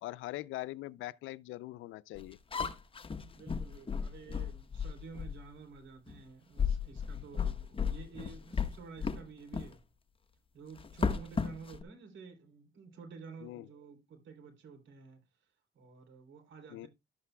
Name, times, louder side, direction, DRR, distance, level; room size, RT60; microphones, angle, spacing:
voice 1, 0.0-2.4 13.4-13.7 16.7-16.9, left 17 dB, 85° left, 0.4 m, -42 dB
sound 1, 2.2-5.5 6.1-6.2 6.6-9.2 9.5-9.7 10.8-11.8, left 6 dB, 25° left, 0.9 m, -34 dB
voice 2, 3.3-9.8 10.5-15.2 15.7-16.9, right 5 dB, 70° right, 3.2 m, -51 dB
11.5 x 8.1 x 2.2 m
cardioid pair, 90°, 20 cm